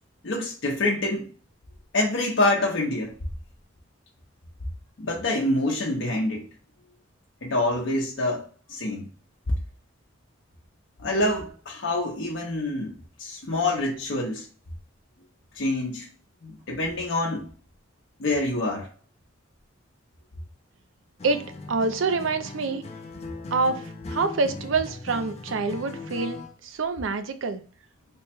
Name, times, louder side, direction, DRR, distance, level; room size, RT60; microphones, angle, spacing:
voice 1, 0.2-1.3 1.9-3.1 5.0-6.5 7.4-9.1 11.0-14.5 15.5-16.1 16.4-17.5 18.2-18.9, left 2 dB, 65° left, 0.7 m, -26 dB
Acoustic guitar, 21.2-26.6, left 3 dB, 35° left, 0.5 m, -39 dB
voice 2, 21.2-22.8 23.5-27.6, right 4 dB, 75° right, 0.5 m, -27 dB
3.4 x 2.2 x 4.2 m
head